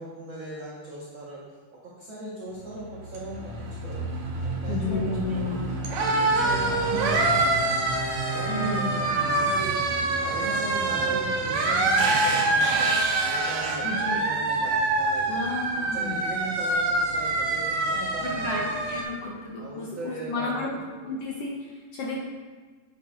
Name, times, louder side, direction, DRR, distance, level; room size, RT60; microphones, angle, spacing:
voice 1, 0.0-1.4 1.8-4.0 4.4-5.6 6.1-7.8 8.2-9.9 10.2-15.4 15.8-19.2 19.6-20.7 20.9-21.1, right 2 dB, 50° right, -7 dB, 1.6 m, -38 dB
sound 1, 2.6-19.0, right 2 dB, 70° right, 2.4 m, -26 dB
voice 2, 4.7-5.6 8.5-8.9 13.8-14.2 15.3-16.2 18.2-20.7 21.0-22.2, left 3 dB, 65° left, -3 dB, 1.6 m, -32 dB
Bowed string instrument, 6.0-12.7, right 2 dB, 30° right, 2.2 m, -37 dB
10.5 x 7.9 x 2.5 m, 1.4 s
omnidirectional pair, 3.7 m